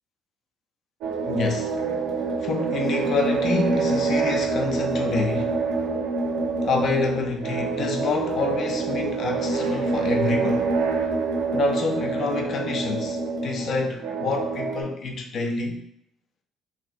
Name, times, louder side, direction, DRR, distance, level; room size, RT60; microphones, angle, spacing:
sound 1, 1.0-14.8, right 3 dB, 90° right, 0.6 m, -26 dB
voice 1, 1.2-1.8 2.4-5.6 6.6-10.7 11.5-15.8, left 4 dB, 40° left, 3 dB, 0.4 m, -27 dB
3.1 x 2.6 x 2.4 m, 0.71 s
cardioid pair, 170°, 0 cm